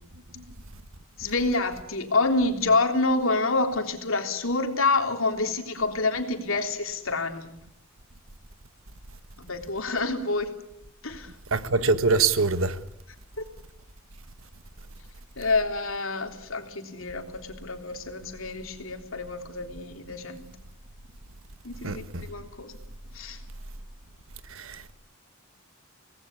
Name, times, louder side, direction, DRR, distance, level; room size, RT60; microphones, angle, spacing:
voice 1, 1.2-7.5 9.4-10.5 11.0-11.3 13.4-13.5 15.4-20.5 21.6-22.8 23.1-23.4, left 3 dB, 65° left, 3.5 m, -27 dB
voice 2, 11.5-12.8 21.8-22.2 24.5-24.9, right 4 dB, 65° right, 1.4 m, -24 dB
25.5 x 19.0 x 8.5 m
head